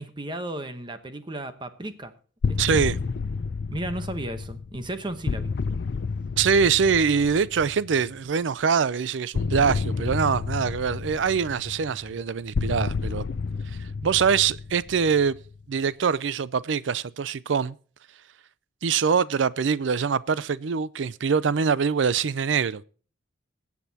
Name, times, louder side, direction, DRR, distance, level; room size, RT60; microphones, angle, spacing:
voice 1, 0.0-2.1 2.5-2.6 3.7-5.5, right 1 dB, 25° right, 0.9 m, -34 dB
sound 1, 2.4-8.2 9.3-15.6, left 4 dB, 60° left, 0.4 m, -30 dB
voice 2, 2.6-3.0 6.4-13.2 14.0-15.4 15.7-17.7 18.8-22.8, right 6 dB, 80° right, 0.5 m, -24 dB
21.5 x 8.3 x 2.8 m
head